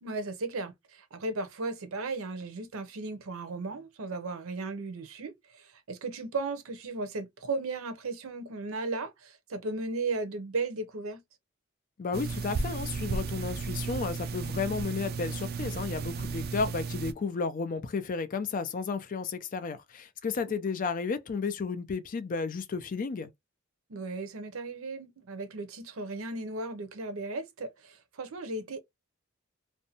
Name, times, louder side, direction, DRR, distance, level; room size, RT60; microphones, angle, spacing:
voice 1, 0.0-11.2 20.5-20.6 23.9-28.8, right 3 dB, 85° right, 0.6 m, -36 dB
voice 2, 12.0-23.3, left 4 dB, 40° left, 0.4 m, -33 dB
sound 1, 12.1-17.1, right 4 dB, 50° right, 0.3 m, -34 dB
2.6 x 2.1 x 2.7 m
head